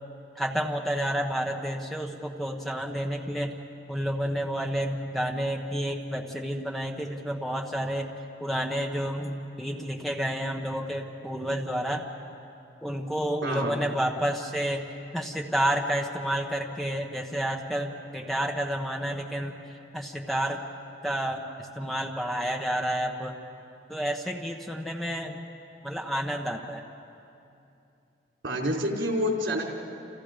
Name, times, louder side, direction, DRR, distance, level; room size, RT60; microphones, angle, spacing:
voice 1, 0.3-3.6 3.9-8.1 8.4-12.1 12.8-20.6 21.0-23.4 23.9-25.4 25.8-26.8, equal, ahead, 1 dB, 1.1 m, -30 dB
voice 2, 13.4-13.7 28.4-29.7, equal, 85° right, 0 dB, 4.1 m, -28 dB
29.0 x 29.0 x 5.2 m, 2.7 s
head